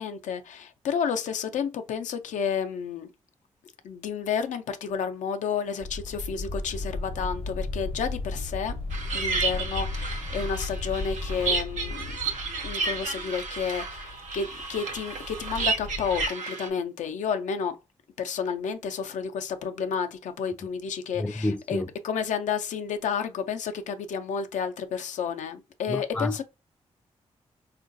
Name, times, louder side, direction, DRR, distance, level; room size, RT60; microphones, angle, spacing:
voice 1, 0.0-3.1 3.8-8.8 9.1-12.2 12.6-17.8 18.2-26.4, left 6 dB, 85° left, 0.5 m, -31 dB
sound 1, 5.8-16.3, left 2 dB, 50° left, 0.7 m, -35 dB
sound 2, 8.9-16.7, right 4 dB, 85° right, 0.7 m, -32 dB
voice 2, 21.2-21.9 25.9-26.3, left 1 dB, 10° left, 0.3 m, -29 dB
3.7 x 2.4 x 2.5 m
cardioid pair, 60°, 12 cm